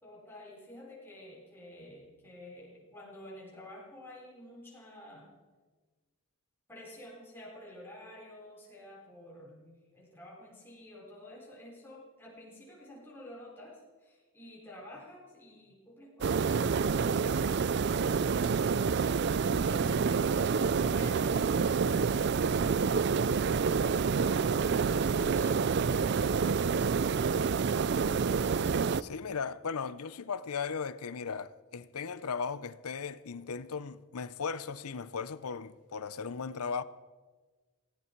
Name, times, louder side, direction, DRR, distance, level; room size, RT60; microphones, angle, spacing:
voice 1, 0.0-5.3 6.7-27.7, left 1 dB, 10° left, 4.3 m, -51 dB
sound 1, 16.2-29.0, right 5 dB, 50° right, 0.4 m, -28 dB
voice 2, 29.0-36.8, left 5 dB, 90° left, 0.6 m, -37 dB
18.0 x 17.0 x 4.6 m
head